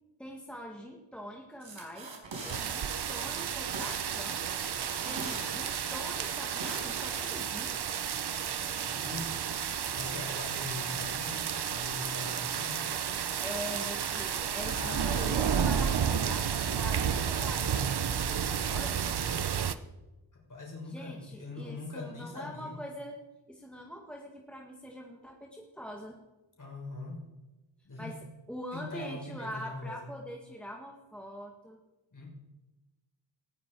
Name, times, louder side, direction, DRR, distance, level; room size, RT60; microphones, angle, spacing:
voice 1, 0.2-2.1 2.4-4.5 5.0-7.8 13.4-19.1 20.8-23.2 23.5-26.2 28.0-28.2 28.5-31.8, equal, ahead, 0 dB, 1.8 m, -43 dB
sound 1, 1.6-2.6 3.0-4.0 4.3-5.4 5.9-7.3, right 3 dB, 80° right, 5.1 m, -42 dB
sound 2, 2.5-19.7, right 7 dB, 60° right, 0.9 m, -32 dB
voice 2, 8.8-9.4 9.9-12.8 14.6-15.4 20.5-22.7 26.6-27.3 27.8-28.1 28.7-30.1 32.1-32.3, left 2 dB, 40° left, -2 dB, 5.9 m, -42 dB
19.0 x 15.5 x 4.7 m, 1.1 s
wide cardioid pair, 140°, 45 cm